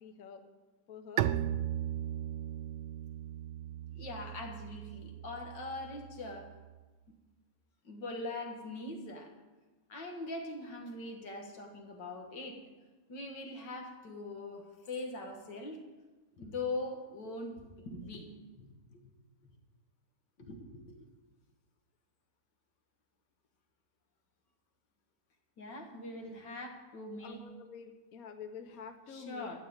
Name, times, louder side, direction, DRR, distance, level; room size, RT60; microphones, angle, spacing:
voice 1, 0.0-0.4 0.9-1.3 27.2-29.6, left 6 dB, 60° left, 8 dB, 1.2 m, -48 dB
Bowed string instrument, 1.2-6.8, right 11 dB, 75° right, 1.1 m, -37 dB
voice 2, 4.0-6.5 7.8-9.3 9.9-12.6 13.1-15.8 16.4-18.3 18.6-19.1 20.4-21.1 25.6-27.4 29.1-29.6, left 2 dB, 80° left, 3 dB, 2.4 m, -42 dB
13.5 x 7.1 x 8.8 m, 1.2 s
omnidirectional pair, 1.9 m